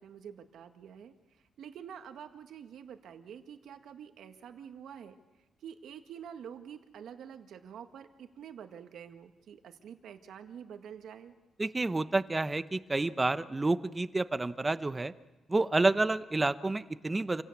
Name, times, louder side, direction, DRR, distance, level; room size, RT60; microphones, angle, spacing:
voice 1, 0.0-5.2 5.6-11.3, right 8 dB, 75° right, 7 dB, 1.8 m, -47 dB
voice 2, 11.6-15.1 15.5-17.4, right 2 dB, 20° right, 13 dB, 0.8 m, -29 dB
27.5 x 17.5 x 8.5 m, 1.1 s
cardioid pair, 115°, 0 cm